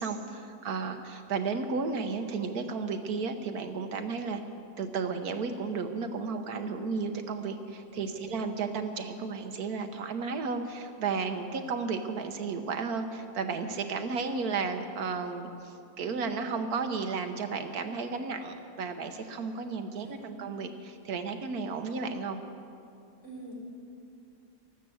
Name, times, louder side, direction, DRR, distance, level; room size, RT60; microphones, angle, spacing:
voice 1, 0.0-4.4 4.8-22.4, right 4 dB, 70° right, 7 dB, 1.4 m, -33 dB
voice 2, 7.8-8.2 19.9-20.4 23.2-23.5, right 3 dB, 50° left, -6 dB, 4.5 m, -47 dB
13.5 x 12.5 x 7.8 m, 2.6 s
omnidirectional pair, 1.7 m